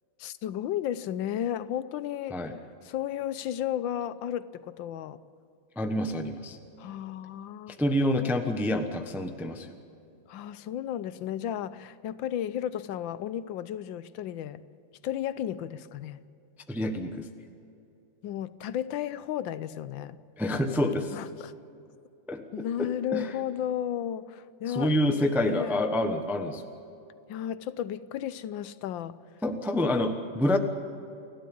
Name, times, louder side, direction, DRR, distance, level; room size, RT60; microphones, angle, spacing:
voice 1, 0.2-2.4 2.8-5.2 6.8-7.8 10.3-14.6 15.0-16.2 18.2-20.2 21.1-21.5 22.5-25.0 25.5-25.8 27.3-29.2, left 10 dB, 85° left, 1.4 m, -33 dB
voice 2, 5.8-6.6 7.8-9.7 16.7-17.3 20.4-21.1 22.3-22.4 22.8-23.3 24.7-26.6 29.4-30.6, left 1 dB, ahead, 0.8 m, -27 dB
29.5 x 12.5 x 8.6 m
omnidirectional pair, 2.1 m